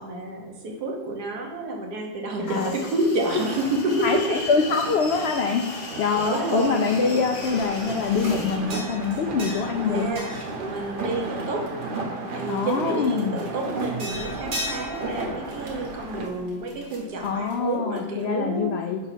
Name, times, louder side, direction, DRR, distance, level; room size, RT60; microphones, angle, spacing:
voice 1, 0.0-4.2 6.2-6.8 9.8-10.3 10.7-11.7 12.3-18.8, right 2 dB, 80° right, 1 dB, 1.6 m, -29 dB
sound 1, 2.5-8.6, left 3 dB, 55° left, 1.1 m, -38 dB
sound 2, 3.3-16.3, right 2 dB, 50° right, 0.7 m, -34 dB
voice 2, 4.0-5.6 6.0-10.1 12.5-13.4 17.2-19.0, left 5 dB, 80° left, 3 dB, 0.5 m, -24 dB
sound 3, 5.0-7.1 7.4-11.8 12.3-18.2, equal, 65° right, 1.9 m, -39 dB
5.5 x 4.0 x 5.7 m, 1.4 s
omnidirectional pair, 1.7 m